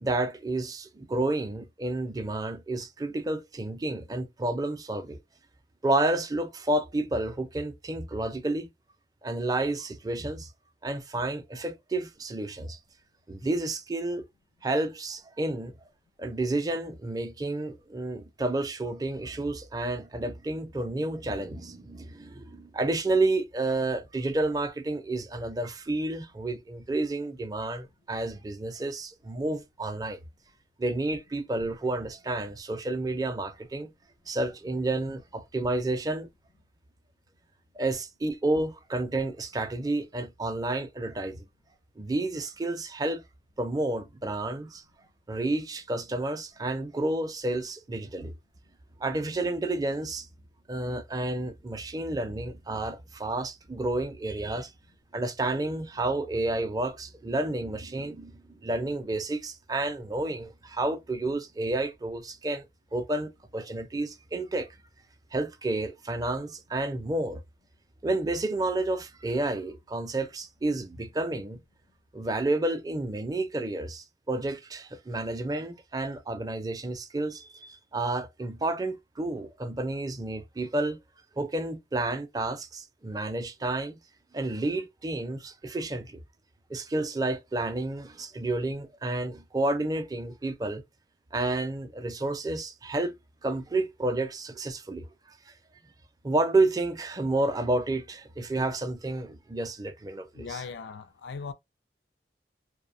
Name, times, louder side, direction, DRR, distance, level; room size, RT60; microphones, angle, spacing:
voice 1, 0.0-5.2 5.8-8.7 9.2-10.5 10.8-12.8 13.3-14.3 14.6-15.7 16.2-30.2 30.8-33.9 34.3-36.3 37.8-41.5 42.0-43.2 43.6-44.8 45.3-48.3 49.0-50.3 50.7-54.7 55.1-62.7 62.9-64.7 65.3-67.4 68.0-71.6 72.1-81.0 81.4-84.0 84.3-86.2 86.7-90.8 91.3-93.1 93.4-95.1 96.2-100.6, right 2 dB, 20° right, 0.4 m, -30 dB
voice 2, 100.3-101.5, left 5 dB, 80° left, 0.4 m, -38 dB
2.6 x 2.1 x 2.5 m
head